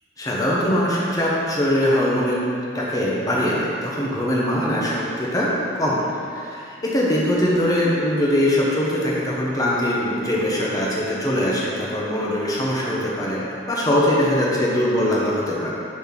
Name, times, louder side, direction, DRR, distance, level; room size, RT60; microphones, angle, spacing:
voice 1, 0.2-2.5 2.7-15.7, equal, 20° left, -5 dB, 1.0 m, -22 dB
7.0 x 4.3 x 5.9 m, 2.5 s
head